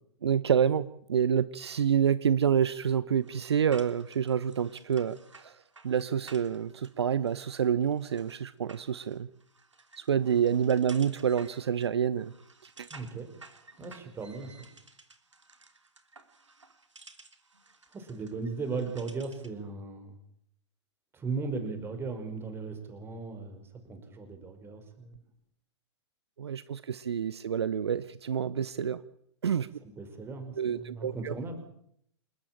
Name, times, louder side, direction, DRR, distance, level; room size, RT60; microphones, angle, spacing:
voice 1, 0.2-5.6 5.8-9.3 10.0-12.3 12.8-12.9 26.4-29.0 29.4-29.7 30.6-31.3, right 8 dB, 60° right, 17 dB, 0.9 m, -28 dB
sound 1, 3.2-19.6, right 3 dB, 75° right, 3.2 m, -54 dB
voice 2, 12.9-13.3 13.8-14.7 17.9-20.2 21.1-25.2 29.8-31.7, right 4 dB, 15° right, 7 dB, 5.2 m, -37 dB
28.5 x 13.5 x 8.9 m, 0.71 s
figure-of-eight pair, 110°, 15 cm